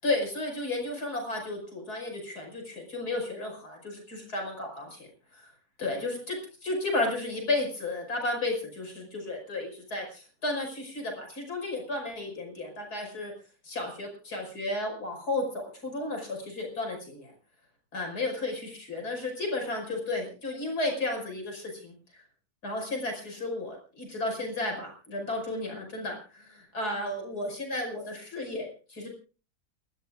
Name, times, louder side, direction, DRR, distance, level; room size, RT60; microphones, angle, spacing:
voice 1, 0.0-5.5 5.8-13.3 13.6-17.3 17.9-22.2 22.6-29.1, left 2 dB, 85° left, 2 dB, 6.1 m, -33 dB
30.0 x 13.0 x 2.4 m, 0.35 s
omnidirectional pair, 1.6 m